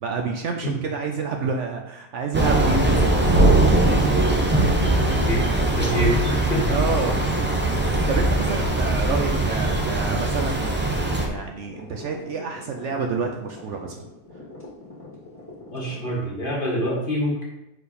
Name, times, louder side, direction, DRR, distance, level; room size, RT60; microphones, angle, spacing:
voice 1, 0.0-3.1 6.7-14.0, right 5 dB, 65° right, 3 dB, 0.9 m, -29 dB
Thunder / Rain, 2.3-11.3, right 2 dB, 15° right, 0.4 m, -21 dB
sound 1, 4.5-16.1, left 2 dB, 10° left, 1.9 m, -40 dB
voice 2, 5.1-5.5 5.8-6.6 15.7-17.4, equal, 35° left, -3 dB, 1.7 m, -25 dB
4.7 x 4.5 x 5.1 m, 0.92 s
omnidirectional pair, 1.5 m